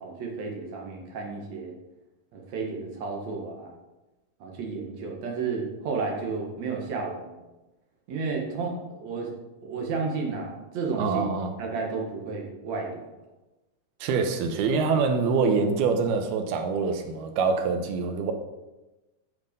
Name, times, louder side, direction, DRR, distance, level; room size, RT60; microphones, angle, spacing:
voice 1, 0.0-1.7 2.3-3.7 4.4-7.4 8.1-9.3 9.6-11.2 11.6-13.1, right 4 dB, 55° right, 0 dB, 2.5 m, -32 dB
voice 2, 11.0-11.5 14.0-18.3, right 5 dB, 85° right, 6 dB, 2.9 m, -25 dB
9.8 x 6.0 x 5.2 m, 1.1 s
omnidirectional pair, 4.3 m